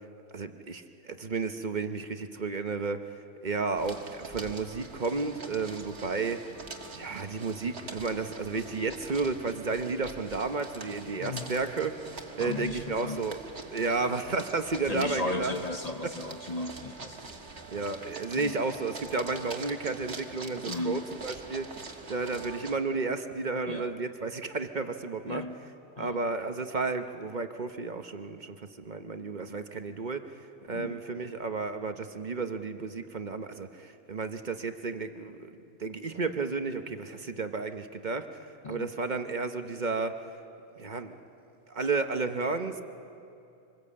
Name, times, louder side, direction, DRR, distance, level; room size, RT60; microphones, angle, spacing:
voice 1, 0.3-3.0 3.4-6.4 6.9-13.4 13.7-15.5 17.7-21.7 22.1-25.4 26.0-30.3 30.6-35.5 35.8-40.3 40.8-41.2 41.7-42.8, right 4 dB, 45° right, 8 dB, 1.0 m, -32 dB
sound 1, 3.7-22.8, right 3 dB, 70° right, 1.9 m, -44 dB
voice 2, 11.2-11.5 12.4-13.3 14.0-14.2 14.8-17.3 18.4-18.6 20.7-21.1 23.7-23.9 25.3-25.6 26.0-26.2 30.7-31.0 38.6-38.9, left 2 dB, 40° left, 7 dB, 0.8 m, -35 dB
25.5 x 20.5 x 8.6 m, 2.7 s
omnidirectional pair, 1.2 m